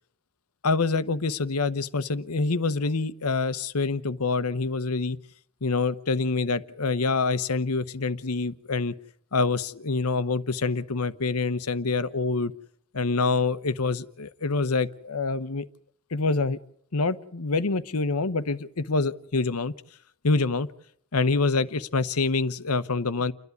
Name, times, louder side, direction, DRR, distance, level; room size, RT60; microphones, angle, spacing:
voice 1, 0.6-5.2 5.6-8.9 9.3-12.5 12.9-15.7 16.1-16.6 16.9-19.7 20.2-20.7 21.1-23.3, left 3 dB, 85° left, 15 dB, 1.0 m, -26 dB
29.5 x 11.0 x 9.6 m, 0.68 s
head